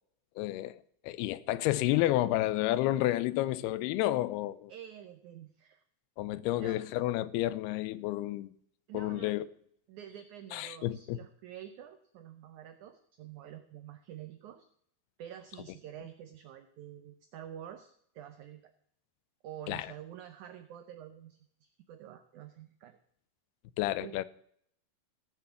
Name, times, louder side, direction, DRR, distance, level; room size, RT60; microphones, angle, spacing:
voice 1, 0.4-4.7 6.2-8.5 8.9-9.5 10.5-11.2 19.7-19.9 23.8-24.2, left 15 dB, 90° left, 2.6 m, -30 dB
voice 2, 4.7-5.8 6.6-6.8 8.9-9.4 9.9-14.7 15.2-18.7 19.4-23.0 24.0-24.2, right 10 dB, 85° right, 1.7 m, -48 dB
16.5 x 6.9 x 7.0 m
omnidirectional pair, 4.5 m